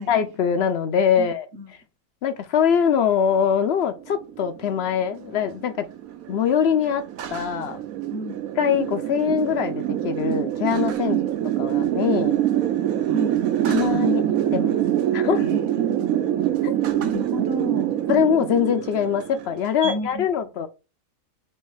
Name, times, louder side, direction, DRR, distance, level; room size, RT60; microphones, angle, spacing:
voice 1, 0.0-1.5 2.2-5.9 6.3-7.0 7.3-7.8 8.6-11.2 11.6-12.4 13.7-14.2 14.5-14.8 15.1-15.5 16.6-16.7 18.1-20.7, left 8 dB, 65° left, 0.6 m, -23 dB
voice 2, 1.2-1.7 8.1-8.4 11.0-11.3 13.1-13.4 15.4-16.4 17.0-17.9 19.8-20.5, right 1 dB, 45° right, 1.0 m, -32 dB
sound 1, 3.6-19.9, right 11 dB, 75° right, 1.0 m, -25 dB
3.3 x 3.1 x 4.7 m
omnidirectional pair, 1.5 m